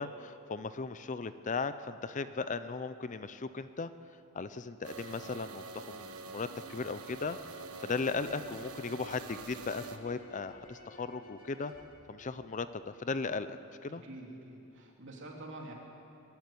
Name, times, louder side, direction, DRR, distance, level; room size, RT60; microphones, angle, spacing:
voice 1, 0.0-3.9 4.3-7.4 7.8-11.7 12.1-13.6 13.8-14.0, left 4 dB, 35° left, 12 dB, 0.5 m, -37 dB
sound 1, 4.8-10.0, right 4 dB, 80° right, 1.4 m, -46 dB
sound 2, 7.1-12.9, left 1 dB, 65° left, 3.1 m, -56 dB
voice 2, 13.9-15.7, right 1 dB, 55° right, -1 dB, 3.3 m, -47 dB
22.5 x 12.0 x 9.6 m, 2.9 s
head